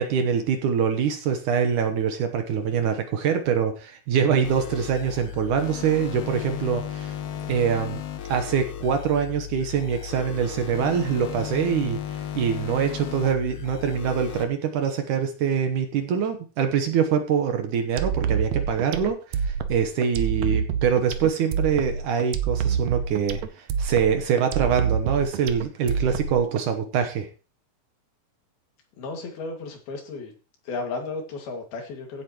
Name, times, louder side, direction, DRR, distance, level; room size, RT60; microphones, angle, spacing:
voice 1, 0.0-7.2 7.5-8.0 8.3-27.3, right 7 dB, 70° right, 7 dB, 2.3 m, -24 dB
sound 1, 4.4-14.4, left 10 dB, 65° left, 2.3 m, -35 dB
sound 2, 18.0-26.6, right 7 dB, 85° right, 1.5 m, -27 dB
voice 2, 29.0-30.3 30.7-32.2, left 3 dB, 90° left, 3 dB, 4.2 m, -34 dB
16.0 x 8.3 x 3.1 m, 0.34 s
omnidirectional pair, 4.2 m